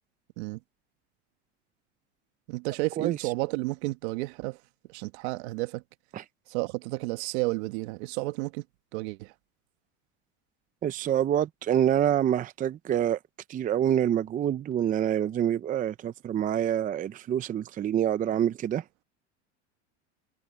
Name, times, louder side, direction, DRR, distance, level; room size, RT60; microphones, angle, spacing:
voice 1, 2.5-4.6 4.9-5.8 6.5-8.6 8.9-9.3, right 23 dB, 65° right, 1.6 m, -31 dB
voice 2, 10.8-13.2 13.5-18.8, right 10 dB, 25° right, 0.6 m, -26 dB
supercardioid pair, 125°, 35 cm